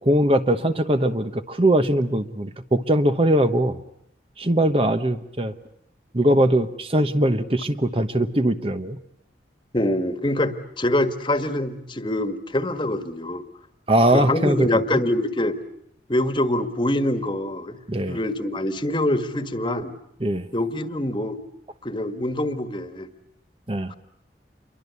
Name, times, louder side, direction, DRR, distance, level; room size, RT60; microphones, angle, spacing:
voice 1, 0.0-3.8 4.4-5.5 6.1-9.0 13.9-14.7 17.9-18.2 20.2-20.5 23.7-23.9, right 1 dB, 30° right, 10 dB, 1.0 m, -21 dB
voice 2, 9.7-13.4 14.1-15.6 16.1-17.8 18.1-19.9 20.5-21.4 21.8-23.1, left 1 dB, 25° left, 10 dB, 1.6 m, -24 dB
28.5 x 23.5 x 8.3 m, 0.75 s
head